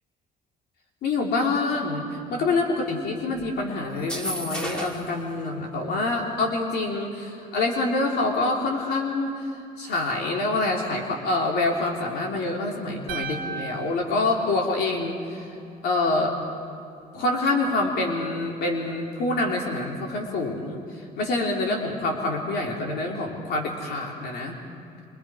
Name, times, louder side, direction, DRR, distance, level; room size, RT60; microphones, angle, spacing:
voice 1, 1.0-9.5 9.8-15.5 15.8-16.4 17.1-20.8 21.2-24.6, left 2 dB, 70° left, -1 dB, 3.2 m, -26 dB
sound 1, 4.0-5.1, right 1 dB, 5° left, 2.8 m, -32 dB
sound 2, 13.1-15.3, right 6 dB, 90° right, 1.8 m, -37 dB
27.0 x 25.0 x 5.0 m, 2.4 s
cardioid pair, 110°, 17 cm